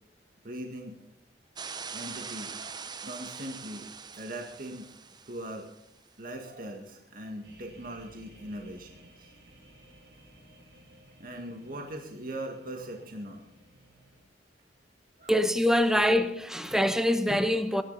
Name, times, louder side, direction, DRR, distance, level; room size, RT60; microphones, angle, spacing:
voice 1, 0.4-1.0 1.9-3.9 4.2-4.9 5.3-5.7 6.2-9.3 11.2-13.4 15.2-15.6 15.9-16.1, right 1 dB, 55° right, 1.8 m, -40 dB
sound 1, 1.6-5.8, right 6 dB, 25° right, 0.6 m, -42 dB
sound 2, 7.4-14.2, right 1 dB, 75° right, 6.3 m, -56 dB
voice 2, 15.3-17.8, equal, 5° right, 1.0 m, -24 dB
22.0 x 10.5 x 4.1 m
head